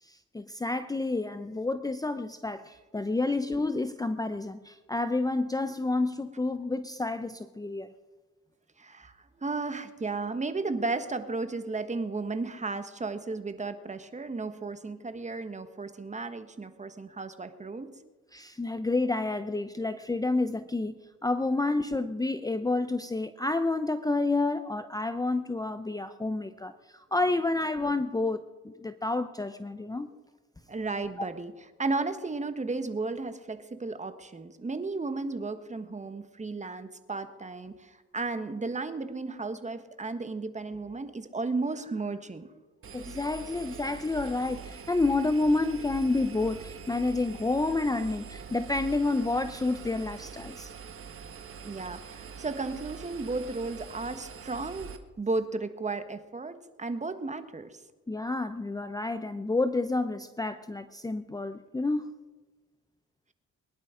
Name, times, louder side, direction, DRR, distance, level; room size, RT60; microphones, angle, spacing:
voice 1, 0.0-7.9 18.3-30.1 31.2-31.3 42.9-50.7 58.1-62.1, left 2 dB, 10° left, 10 dB, 0.7 m, -29 dB
voice 2, 8.8-17.9 30.7-31.5 31.8-42.5 51.6-54.9 55.2-57.7, right 3 dB, 25° right, 10 dB, 1.5 m, -34 dB
Engine, 42.8-55.0, right 6 dB, 45° right, 1.6 m, -44 dB
22.5 x 11.0 x 5.1 m, 1.2 s
cardioid pair, 90°, 30 cm